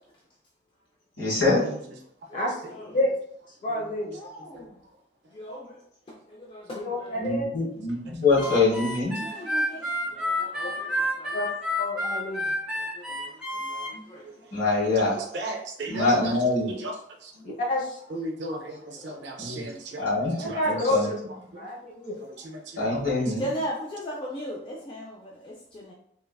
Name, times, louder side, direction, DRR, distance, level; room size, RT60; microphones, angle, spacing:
voice 1, 1.2-1.6 7.2-9.1 14.5-15.2 15.9-16.7 19.4-19.6 20.0-21.1 22.8-23.4, left 3 dB, 80° left, -6 dB, 1.5 m, -24 dB
voice 2, 2.3-3.0 4.1-4.8 5.3-5.8 6.3-7.2 9.2-11.4 12.7-14.3 18.6-19.5 23.3-25.9, equal, 30° left, -3 dB, 0.3 m, -39 dB
voice 3, 3.6-4.2 6.7-7.5 11.3-11.5 11.8-12.5 17.4-18.0 20.5-21.2 21.6-22.2, left 1 dB, 45° left, -2 dB, 0.7 m, -28 dB
Harmonica, 8.4-13.9, left 1 dB, 5° right, 0.8 m, -29 dB
voice 4, 15.3-16.3 16.8-16.9 18.1-18.7 19.0-20.1 20.5-20.6 22.9-23.0, right 1 dB, 65° right, 3 dB, 0.5 m, -34 dB
3.1 x 2.3 x 2.2 m, 0.69 s
head